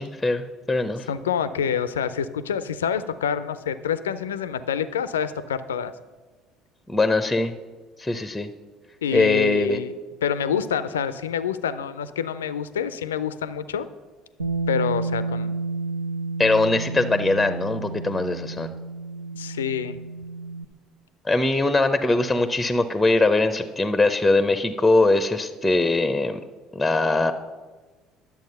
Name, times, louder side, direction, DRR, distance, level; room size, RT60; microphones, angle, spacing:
voice 1, 0.0-1.1 6.9-7.5 8.0-8.5 9.1-9.8 16.4-18.7 21.2-26.4 26.7-27.3, left 2 dB, 10° left, 9 dB, 0.6 m, -21 dB
voice 2, 1.1-5.9 9.0-9.9 10.2-13.9 14.7-15.5 19.3-20.0, left 8 dB, 80° left, 14 dB, 0.4 m, -27 dB
Bass guitar, 14.4-20.6, right 3 dB, 90° right, 0.5 m, -30 dB
10.5 x 7.2 x 5.4 m, 1.3 s
figure-of-eight pair, 60°, 0 cm